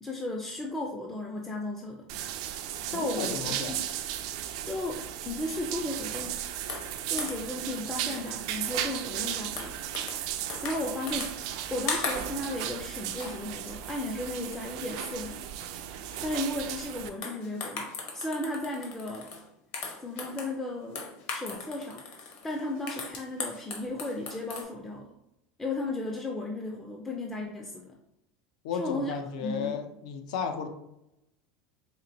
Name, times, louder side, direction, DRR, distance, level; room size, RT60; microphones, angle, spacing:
voice 1, 0.0-2.1 2.9-3.8 4.6-5.0 5.3-6.4 7.1-9.8 10.6-11.3 11.7-15.4 16.2-19.3 20.0-21.0 21.3-22.0 22.4-25.1 25.6-27.9 28.7-29.8, left 2 dB, 10° left, 0 dB, 0.3 m, -35 dB
sound 1, 2.1-17.1, right 11 dB, 65° right, 0.3 m, -35 dB
voice 2, 2.9-3.8 28.6-30.7, left 6 dB, 85° left, 6 dB, 0.5 m, -34 dB
sound 2, 6.7-7.6 8.1-8.6 8.9-10.2 10.5-11.6 11.9-12.9 13.2-13.4 13.7-14.5 14.9-15.3 15.6-15.7 16.1-16.3 17.1-19.5 19.7-20.6 20.9-24.6, left 4 dB, 55° left, 0.8 m, -39 dB
4.3 x 2.9 x 2.6 m, 0.85 s
supercardioid pair, 155°, 4 cm